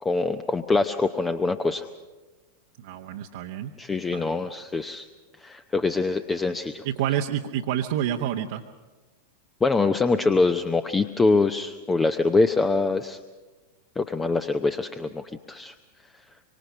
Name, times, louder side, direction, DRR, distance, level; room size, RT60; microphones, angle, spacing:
voice 1, 0.0-1.9 3.8-5.1 5.4-6.8 9.6-13.2 14.0-15.7, left 3 dB, 15° left, 10 dB, 0.8 m, -24 dB
voice 2, 2.8-3.7 4.1-4.4 6.8-8.6, right 10 dB, 50° right, 2 dB, 1.0 m, -28 dB
25.0 x 25.0 x 5.6 m, 1.2 s
figure-of-eight pair, 90°, 0 cm